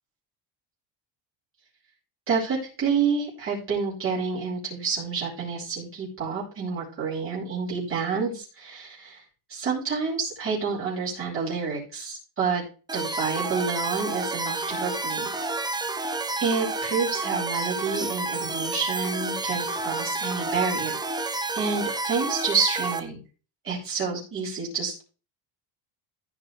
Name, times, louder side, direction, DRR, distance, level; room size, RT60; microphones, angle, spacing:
voice 1, 2.3-9.2 9.5-12.6 12.9-15.3 16.4-23.2 23.6-25.0, right 5 dB, 25° right, -6 dB, 5.4 m, -29 dB
sound 1, 12.9-23.0, right 3 dB, 10° right, 0.9 m, -30 dB
16.0 x 6.1 x 3.4 m, 0.35 s
cardioid pair, 155°, 47 cm